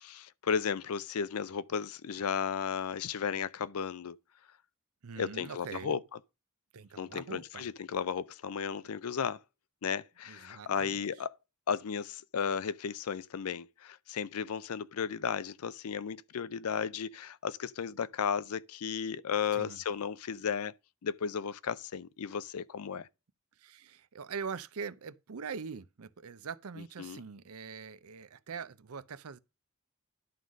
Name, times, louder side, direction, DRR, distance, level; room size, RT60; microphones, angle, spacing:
voice 1, 0.0-4.2 5.2-6.0 7.0-9.4 9.8-11.3 11.7-20.7 21.0-23.1 27.0-27.2, left 7 dB, 90° left, 0.5 m, -34 dB
voice 2, 5.0-6.0 6.7-7.7 10.3-11.0 19.5-19.8 23.6-29.4, right 5 dB, 80° right, 0.6 m, -43 dB
11.0 x 3.9 x 6.2 m
head